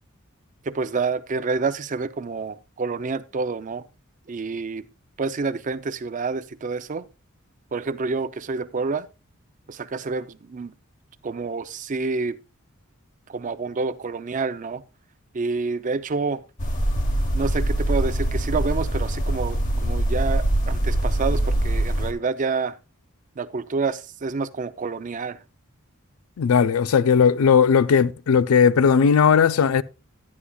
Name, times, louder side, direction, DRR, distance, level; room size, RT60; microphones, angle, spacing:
voice 1, 0.7-3.8 4.3-4.9 5.2-7.1 7.7-9.1 9.7-10.7 11.2-12.4 13.3-14.8 15.3-16.4 17.3-22.8 23.4-25.4, right 4 dB, 35° right, 0.4 m, -28 dB
sound 1, 16.6-22.1, right 1 dB, 40° left, 1.1 m, -23 dB
voice 2, 26.4-29.8, left 6 dB, 85° left, 0.4 m, -17 dB
11.5 x 9.7 x 2.3 m
head